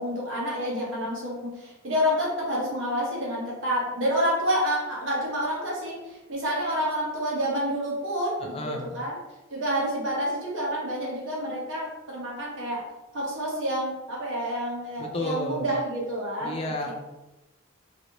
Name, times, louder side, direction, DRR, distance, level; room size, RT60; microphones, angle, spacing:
voice 1, 0.0-9.1 9.5-12.9 13.1-16.9, equal, 60° right, -5 dB, 1.2 m, -28 dB
voice 2, 8.4-9.0 15.0-15.7 16.4-16.9, left 1 dB, 25° left, 1 dB, 0.3 m, -32 dB
3.1 x 2.6 x 2.9 m, 1.0 s
head